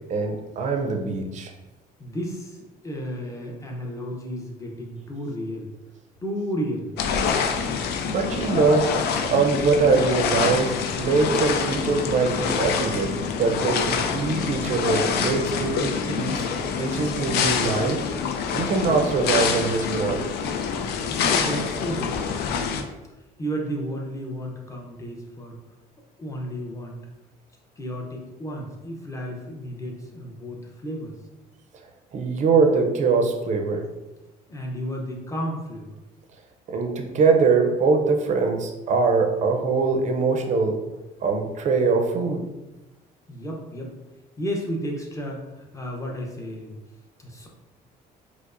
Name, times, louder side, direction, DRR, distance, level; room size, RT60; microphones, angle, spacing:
voice 1, 0.1-1.5 7.5-7.6 8.1-9.0 9.3-16.5 16.8-18.0 18.5-20.2 32.1-33.8 36.7-40.8 41.2-42.5, right 4 dB, 45° right, 4 dB, 0.5 m, -23 dB
voice 2, 2.0-2.6 2.8-5.7 6.2-6.9 21.1-22.1 23.4-25.6 26.2-27.0 27.8-31.2 34.5-36.0 43.3-43.9 44.4-46.7 47.2-47.5, equal, 20° left, 0 dB, 0.7 m, -32 dB
sound 1, 7.0-22.8, left 6 dB, 75° left, 0.4 m, -26 dB
4.6 x 2.0 x 2.5 m, 1.0 s
cardioid pair, 110°, 17 cm